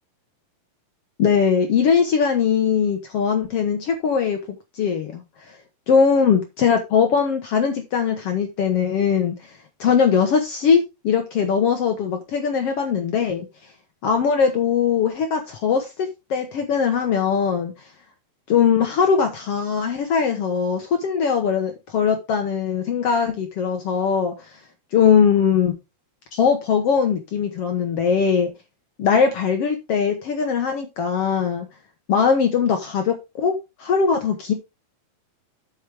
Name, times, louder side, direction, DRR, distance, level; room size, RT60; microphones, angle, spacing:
voice 1, 1.2-4.4 4.7-5.2 5.9-9.4 9.8-13.5 14.0-17.7 18.5-24.5 24.9-25.8 26.3-28.5 29.0-31.7 32.1-34.5, left 6 dB, 65° left, 1.5 m, -20 dB
8.1 x 7.4 x 3.5 m
omnidirectional pair, 4.2 m